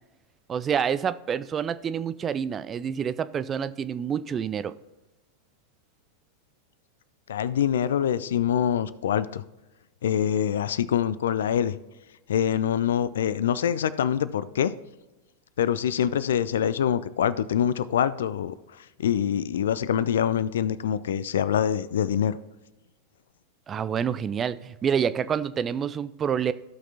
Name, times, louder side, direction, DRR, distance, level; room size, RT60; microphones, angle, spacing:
voice 1, 0.5-4.7 23.7-26.5, right 7 dB, 25° right, 14 dB, 0.4 m, -27 dB
voice 2, 7.3-9.4 10.0-11.8 12.3-14.7 15.6-18.5 19.0-22.4, left 9 dB, 60° left, 17 dB, 0.4 m, -25 dB
16.0 x 5.8 x 2.8 m, 1.1 s
figure-of-eight pair, 90°, 0 cm